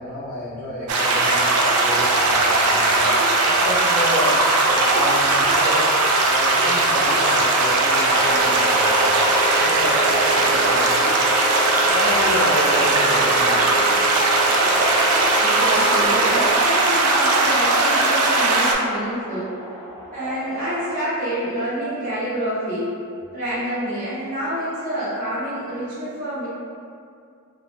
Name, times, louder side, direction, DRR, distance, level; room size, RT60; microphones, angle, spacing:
voice 1, 0.0-3.0 3.4-5.8 6.2-11.3 11.9-14.1, left 1 dB, 65° right, -11 dB, 0.8 m, -30 dB
sound 1, 0.9-18.7, right 2 dB, 85° right, 0.4 m, -18 dB
Subway metro underground, 2.0-21.0, equal, 5° right, 0.9 m, -37 dB
sound 2, 8.2-16.5, right 1 dB, 25° left, 0.3 m, -29 dB
voice 2, 15.3-19.5 20.1-22.9 23.3-26.5, right 1 dB, 40° right, -12 dB, 1.1 m, -27 dB
2.6 x 2.1 x 3.2 m, 2.4 s
head